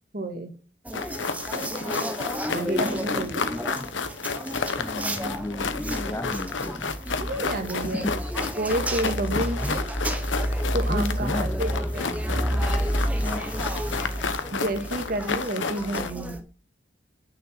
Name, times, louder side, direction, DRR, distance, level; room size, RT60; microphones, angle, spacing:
voice 1, 0.1-0.5 2.5-3.5 7.2-8.1 8.6-9.9 10.7-12.1 14.5-16.4, right 1 dB, 50° right, 1.9 m, -30 dB
sound 1, 0.8-16.4, equal, 10° right, 1.1 m, -30 dB
sound 2, 0.9-16.1, left 4 dB, 80° left, 1.0 m, -31 dB
voice 2, 3.0-3.9 4.8-7.0 7.8-8.2 9.3-9.8 10.9-11.6 13.2-13.5, left 1 dB, 15° left, 0.5 m, -34 dB
8.7 x 6.8 x 5.9 m
head